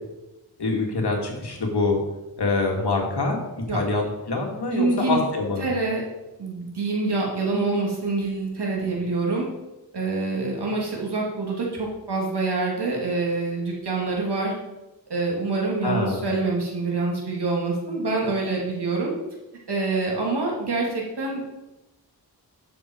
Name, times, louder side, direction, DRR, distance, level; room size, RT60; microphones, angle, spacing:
voice 1, 0.6-2.0 2.4-3.4 3.7-5.6 15.8-16.2, left 3 dB, 80° left, 1 dB, 2.3 m, -25 dB
voice 2, 4.7-5.2 5.6-6.0 6.4-9.5 9.9-14.5 15.1-19.1 19.7-21.4, right 3 dB, 85° right, -2 dB, 2.8 m, -26 dB
12.5 x 6.5 x 4.6 m, 1.0 s
wide cardioid pair, 85°, 39 cm